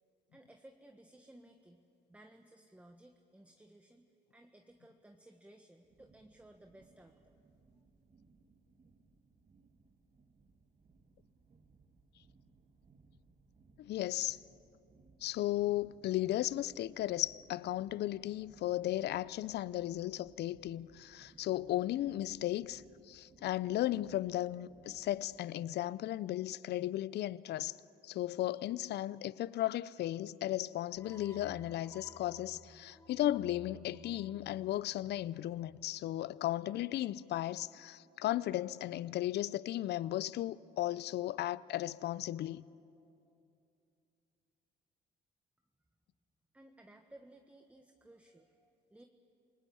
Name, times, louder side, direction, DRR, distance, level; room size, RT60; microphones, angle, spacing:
voice 1, 0.3-1.8 2.1-7.4 46.5-49.0, right 1 dB, 5° right, 1.4 m, -59 dB
sound 1, 5.8-25.4, right 4 dB, 40° right, 2.1 m, -65 dB
voice 2, 13.8-14.4 15.2-27.7 28.0-42.6, left 14 dB, 65° left, 0.6 m, -35 dB
sound 2, 31.0-36.2, right 1 dB, 15° left, 1.7 m, -57 dB
28.0 x 19.0 x 8.6 m
supercardioid pair, 75°, 18 cm